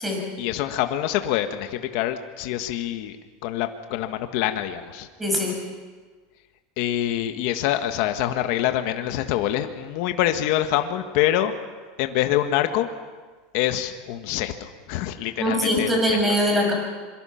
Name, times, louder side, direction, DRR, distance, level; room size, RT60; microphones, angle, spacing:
voice 1, 0.4-3.2 3.4-5.1 6.8-11.5 12.0-12.9 13.5-16.2, left 12 dB, 55° left, 7 dB, 1.5 m, -25 dB
voice 2, 5.2-5.5 15.4-16.7, equal, 10° right, 0 dB, 6.7 m, -22 dB
26.5 x 23.5 x 5.8 m, 1.4 s
supercardioid pair, 160°, 0 cm